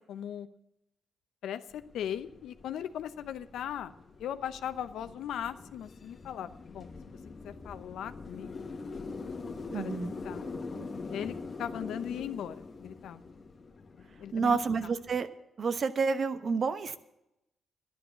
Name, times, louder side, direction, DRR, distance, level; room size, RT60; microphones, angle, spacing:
voice 1, 0.1-0.5 1.4-3.9 4.2-7.2 7.4-8.7 9.7-10.5 11.1-13.2 14.0-14.6, left 9 dB, 85° left, 11 dB, 0.7 m, -39 dB
sound 1, 1.7-15.2, left 4 dB, 45° left, 1.5 m, -43 dB
voice 2, 9.7-10.1 14.3-15.3 15.6-17.0, right 5 dB, 55° right, 11 dB, 1.0 m, -29 dB
11.5 x 10.5 x 6.8 m, 0.86 s
cardioid pair, 75°, 0 cm